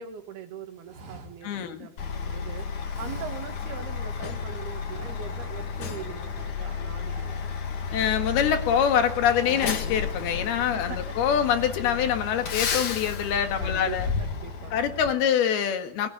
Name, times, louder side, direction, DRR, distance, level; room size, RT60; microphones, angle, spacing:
voice 1, 0.0-2.7 3.0-7.5 10.7-11.2 13.6-14.7, right 8 dB, 80° right, 7 dB, 4.0 m, -41 dB
sound 1, 0.8-2.3 2.9-4.4 4.8-5.7 6.0-6.2 6.5-8.2 8.6-8.9 9.2-10.2 10.6-10.7 11.5-12.6 13.0-13.4 13.6-14.3, right 4 dB, 60° right, 4.0 m, -47 dB
voice 2, 1.4-1.9 7.9-14.1 14.7-16.1, left 8 dB, 80° left, 7 dB, 3.7 m, -25 dB
Truck, 2.0-15.1, left 5 dB, 55° left, 3.5 m, -32 dB
22.5 x 18.0 x 9.9 m, 0.80 s
omnidirectional pair, 4.4 m